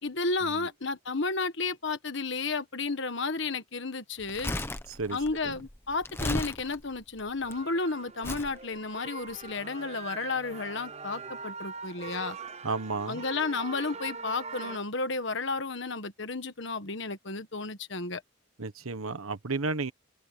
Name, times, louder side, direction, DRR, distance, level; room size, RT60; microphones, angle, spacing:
voice 1, 0.0-4.5 5.1-12.4 13.1-18.2, left 3 dB, 60° left, 1.5 m, -32 dB
Crumpling crinkling, 4.2-7.5 8.2-8.6 9.3-9.4, left 1 dB, 10° left, 1.1 m, -35 dB
sound 1, 7.4-14.8, right 4 dB, 30° right, 0.8 m, -42 dB
voice 2, 12.6-13.2 18.6-19.9, right 3 dB, 90° right, 1.3 m, -33 dB
open air
head